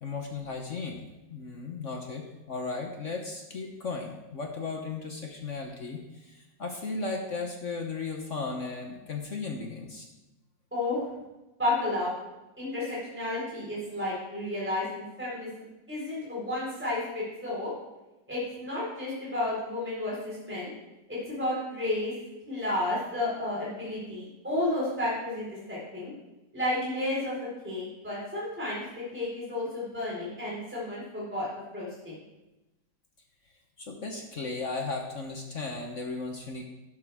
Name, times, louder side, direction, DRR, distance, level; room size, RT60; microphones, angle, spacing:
voice 1, 0.0-10.1 33.8-36.6, left 3 dB, 45° left, 2 dB, 1.2 m, -36 dB
voice 2, 10.7-11.1 11.6-12.1 12.6-17.7 18.3-20.7 21.1-22.1 22.5-26.1 26.5-27.3 27.6-28.8 29.1-31.5 31.7-32.2, left 1 dB, 5° right, -7 dB, 4.5 m, -32 dB
11.5 x 11.5 x 3.6 m, 1.0 s
omnidirectional pair, 2.1 m